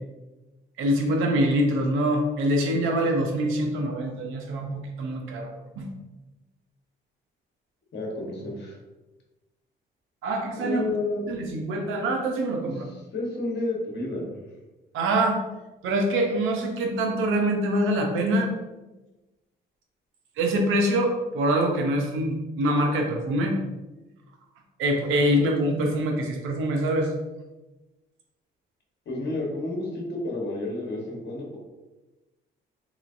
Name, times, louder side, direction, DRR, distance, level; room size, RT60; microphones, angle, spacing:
voice 1, 0.8-5.5 5.8-5.9 10.2-10.8 11.3-12.8 14.9-15.4 15.8-18.5 20.4-23.6 24.8-27.1, right 1 dB, 85° right, 2 dB, 0.7 m, -24 dB
voice 2, 7.9-8.8 10.5-11.2 12.6-14.3 29.0-31.6, left 2 dB, 60° left, -1 dB, 1.2 m, -31 dB
3.9 x 3.1 x 2.5 m, 1.1 s
cardioid pair, 90°, 20 cm